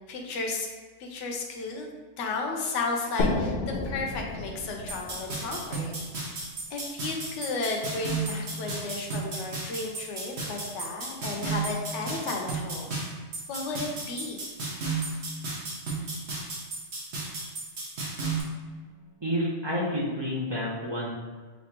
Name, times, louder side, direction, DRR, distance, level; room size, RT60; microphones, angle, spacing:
voice 1, 0.1-0.7 1.0-1.9 2.2-5.9 6.7-12.9 13.5-14.4, left 3 dB, 80° left, 1 dB, 0.9 m, -33 dB
sound 1, 3.2-6.7, left 2 dB, 55° left, 0.8 m, -32 dB
sound 2, 4.9-18.4, right 3 dB, 70° right, 1.2 m, -34 dB
voice 2, 19.2-21.1, equal, 25° right, -6 dB, 0.7 m, -29 dB
5.2 x 2.8 x 2.9 m, 1.4 s
omnidirectional pair, 1.2 m